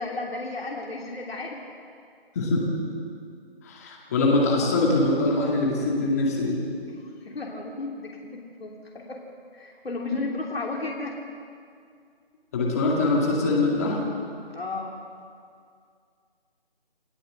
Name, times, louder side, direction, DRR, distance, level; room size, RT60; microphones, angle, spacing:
voice 1, 0.0-1.6 6.9-9.2 9.5-11.2 14.5-15.0, left 3 dB, 70° left, -1 dB, 3.0 m, -34 dB
voice 2, 2.3-2.7 3.6-6.6 12.5-14.0, left 2 dB, 15° left, -2 dB, 2.3 m, -23 dB
27.5 x 14.5 x 7.7 m, 2.3 s
figure-of-eight pair, 170°, 31 cm